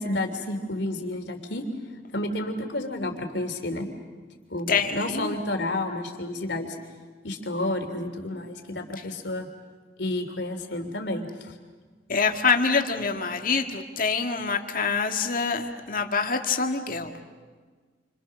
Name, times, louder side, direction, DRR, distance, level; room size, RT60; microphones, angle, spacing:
voice 1, 0.0-1.7 2.1-3.9 4.5-6.8 7.2-9.5 10.0-11.5, left 1 dB, 65° left, 4 dB, 3.2 m, -30 dB
voice 2, 4.7-5.3 12.1-17.1, left 5 dB, 50° left, 4 dB, 1.9 m, -25 dB
29.0 x 26.5 x 6.5 m, 1.5 s
head